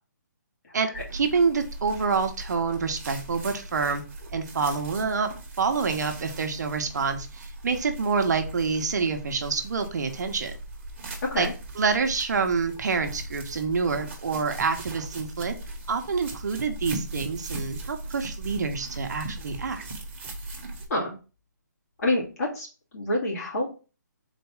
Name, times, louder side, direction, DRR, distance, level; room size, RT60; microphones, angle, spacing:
voice 1, 0.7-4.0 4.3-5.3 5.6-10.5 11.4-11.5 11.8-15.5 15.9-19.8, right 5 dB, 60° right, 6 dB, 0.9 m, -27 dB
sound 1, 0.9-20.9, right 2 dB, 40° right, 1.1 m, -39 dB
voice 2, 22.0-22.7 22.9-23.7, left 1 dB, 55° left, -4 dB, 2.2 m, -27 dB
4.0 x 2.6 x 4.6 m, 0.34 s
hypercardioid pair, 160°, 10 cm